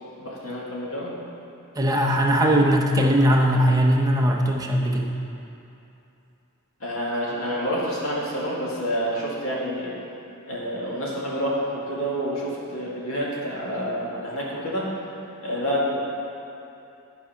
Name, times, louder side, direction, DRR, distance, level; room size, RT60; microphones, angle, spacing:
voice 1, 0.2-1.1 6.8-9.9 10.5-14.8 15.4-15.9, equal, 70° left, -6 dB, 2.3 m, -28 dB
voice 2, 1.8-5.1, equal, 15° right, -1 dB, 0.8 m, -20 dB
12.0 x 4.7 x 5.8 m, 2.8 s
head